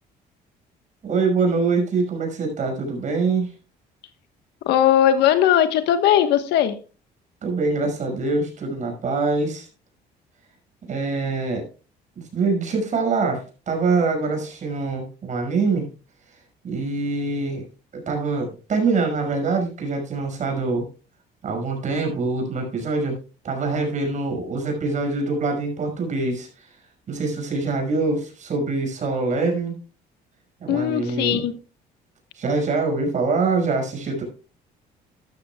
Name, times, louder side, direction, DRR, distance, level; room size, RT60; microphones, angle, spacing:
voice 1, 1.0-3.5 7.4-9.7 10.9-11.6 12.2-15.9 16.6-17.6 18.1-20.9 21.4-23.2 23.4-26.5 27.1-29.7 30.6-31.5 32.4-34.2, right 3 dB, 45° right, 2 dB, 5.7 m, -24 dB
voice 2, 4.7-6.7 30.7-31.5, left 10 dB, 85° left, 10 dB, 1.3 m, -18 dB
13.0 x 12.5 x 2.3 m, 0.36 s
cardioid pair, 110°, 17 cm